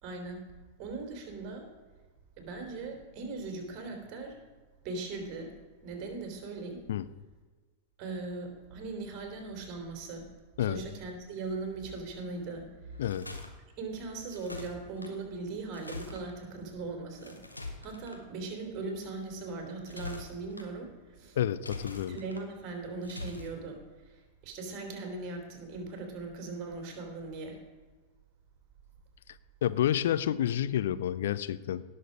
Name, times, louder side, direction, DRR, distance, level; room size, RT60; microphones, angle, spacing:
voice 1, 0.0-0.4 0.8-1.7 2.4-4.4 4.8-5.5 5.8-6.8 8.0-10.3 10.6-12.7 13.8-17.4 17.8-21.4 22.1-23.8 24.1-27.6, right 3 dB, 40° right, 4 dB, 3.1 m, -39 dB
sound 1, 12.9-13.5 14.3-15.1 15.7-16.2 17.2-18.2 19.7-20.7 21.5-22.4 23.0-23.5, left 2 dB, 85° left, 1.5 m, -43 dB
voice 2, 21.4-22.2 29.6-31.8, left 11 dB, 60° left, 15 dB, 0.4 m, -29 dB
17.5 x 6.7 x 5.1 m, 1.3 s
figure-of-eight pair, 90°, 0 cm